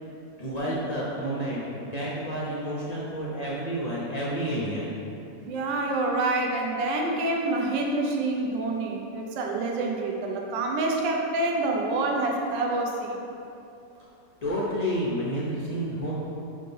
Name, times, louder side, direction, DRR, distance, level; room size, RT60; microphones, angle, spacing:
voice 1, 0.4-4.9 14.4-16.1, equal, 75° left, -7 dB, 0.3 m, -30 dB
voice 2, 5.5-13.1, right 2 dB, 85° right, 0 dB, 1.3 m, -27 dB
5.5 x 3.7 x 5.4 m, 2.8 s
omnidirectional pair, 1.9 m